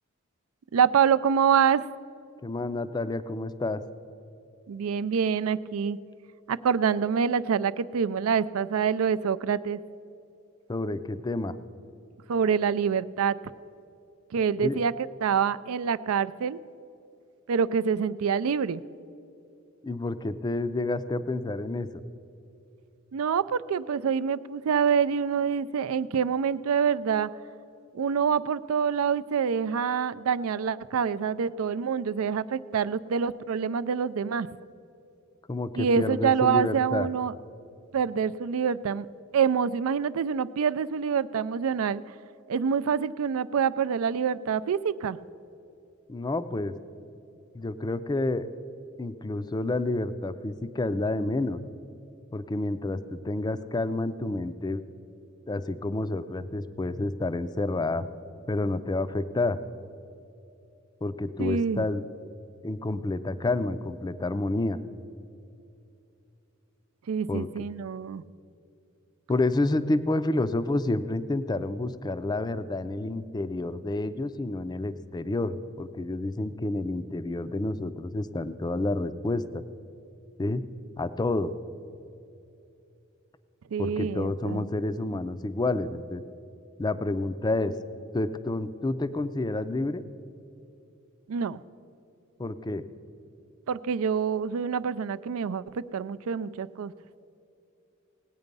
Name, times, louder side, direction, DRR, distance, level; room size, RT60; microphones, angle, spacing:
voice 1, 0.7-1.8 4.7-6.0 6.5-9.8 12.3-13.4 14.3-14.9 15.2-16.6 17.5-18.8 23.1-27.3 27.9-34.5 35.7-37.3 37.9-39.1 39.3-42.0 42.5-45.2 61.4-61.9 67.1-68.2 83.7-84.6 91.3-91.6 93.7-96.9, right 7 dB, 80° right, 15 dB, 0.4 m, -26 dB
voice 2, 2.4-3.8 10.7-11.6 14.6-14.8 19.8-22.0 35.5-37.1 46.1-46.7 47.5-48.5 49.0-51.6 52.3-54.8 55.5-58.1 58.5-59.6 61.0-62.1 62.6-64.8 67.3-67.6 69.3-79.6 80.4-80.6 81.0-81.5 83.8-86.2 86.8-87.7 88.1-90.0 92.4-92.8, left 2 dB, 20° left, 13 dB, 0.4 m, -29 dB
18.0 x 8.9 x 5.3 m, 2.8 s
head